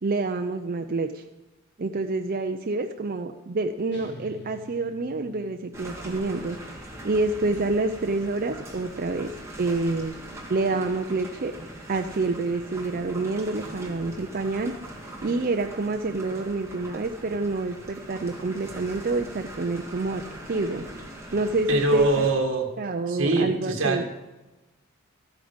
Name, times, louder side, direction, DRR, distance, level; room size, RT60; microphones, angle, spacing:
voice 1, 0.0-1.2 1.8-6.6 7.0-9.3 9.6-10.1 10.5-11.5 11.9-14.7 15.2-20.2 20.5-20.9 21.3-22.3 22.8-24.1, right 3 dB, 40° right, 5 dB, 0.5 m, -27 dB
sound 1, 3.9-6.5, right 1 dB, 50° left, 1.4 m, -48 dB
sound 2, 5.7-22.3, right 1 dB, 15° right, 2.0 m, -41 dB
voice 2, 21.7-22.7 23.1-24.0, right 3 dB, 60° right, 2 dB, 1.8 m, -23 dB
13.5 x 9.1 x 5.1 m, 1.1 s
head